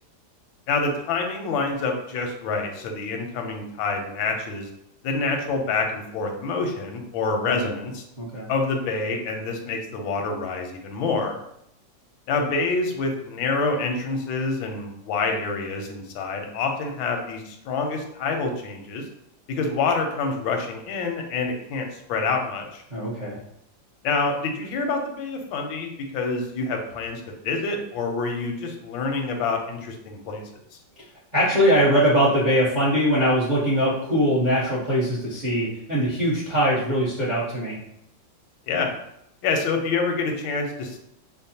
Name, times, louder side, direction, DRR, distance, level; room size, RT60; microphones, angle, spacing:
voice 1, 0.7-4.7 5.0-8.0 8.5-11.4 12.3-19.0 19.5-22.8 24.0-30.4 30.7-30.8 38.7-38.9 39.4-41.0, left 4 dB, 85° left, 3 dB, 1.4 m, -27 dB
voice 2, 8.2-8.5 22.9-23.4 31.3-37.8, equal, 50° right, -8 dB, 0.5 m, -22 dB
5.2 x 2.0 x 2.7 m, 0.76 s
omnidirectional pair, 2.1 m